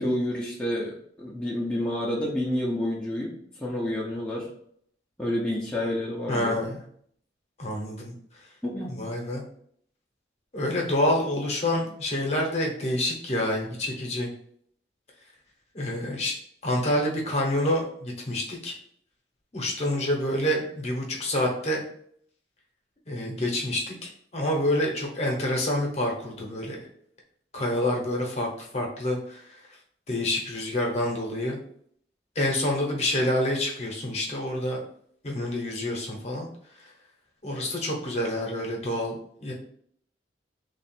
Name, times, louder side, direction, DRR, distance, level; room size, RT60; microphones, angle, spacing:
voice 1, 0.0-4.5 5.2-6.6 8.6-9.0, left 1 dB, 5° left, -6 dB, 0.6 m, -29 dB
voice 2, 6.3-6.8 7.6-8.1 8.9-9.4 10.5-14.3 15.7-16.3 16.6-18.7 19.5-21.8 23.1-26.9 27.5-29.6 30.1-31.6 32.4-34.8 35.2-36.5 37.4-39.1 39.4-39.5, left 1 dB, 35° left, -1 dB, 0.9 m, -27 dB
3.3 x 2.4 x 4.3 m, 0.65 s
head